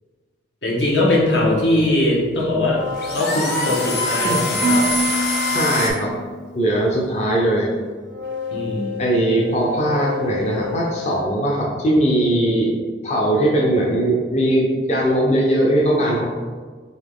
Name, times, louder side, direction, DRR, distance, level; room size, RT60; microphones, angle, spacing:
voice 1, 0.6-2.8 3.1-4.9 8.5-9.0, left 1 dB, 80° left, -4 dB, 1.2 m, -20 dB
sound 1, 0.9-5.9, left 2 dB, 60° left, 0.9 m, -24 dB
sound 2, 2.6-4.8 8.1-11.2, left 5 dB, 85° right, 0.6 m, -32 dB
Marimba xylophone / Wood, 4.6-6.8, right 2 dB, 45° right, 0.3 m, -25 dB
voice 2, 5.5-6.1 6.6-7.7 9.0-12.7 13.0-16.3, right 1 dB, 40° left, -3 dB, 0.5 m, -19 dB
4.0 x 3.1 x 3.6 m, 1.5 s
head